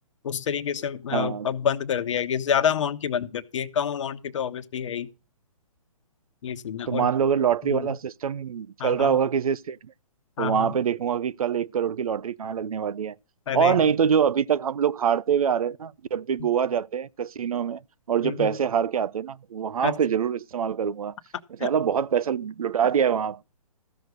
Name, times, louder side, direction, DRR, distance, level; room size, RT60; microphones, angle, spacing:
voice 1, 0.2-5.1 6.4-7.1 7.6-7.9 8.8-9.1 10.4-10.7 13.5-13.8 16.4-16.5 18.2-18.6 19.8-20.0 21.6-21.7, left 8 dB, 55° left, 1.1 m, -28 dB
voice 2, 1.1-1.5 6.9-9.8 10.4-13.2 13.5-17.8 18.1-21.2 21.6-23.4, right 7 dB, 70° right, 0.5 m, -24 dB
14.5 x 6.2 x 6.6 m
hypercardioid pair, 135°, 19 cm